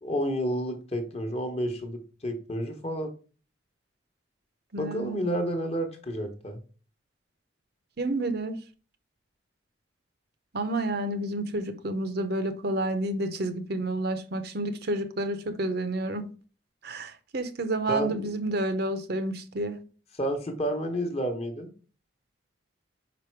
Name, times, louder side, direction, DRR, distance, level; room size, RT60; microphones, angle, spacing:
voice 1, 0.0-3.1 4.8-6.6 17.9-18.3 20.2-21.7, equal, 30° left, 1.0 m, -30 dB
voice 2, 4.7-5.2 8.0-8.6 10.5-16.3 16.8-19.8, right 1 dB, 55° right, 0.8 m, -30 dB
5.2 x 5.1 x 4.6 m
head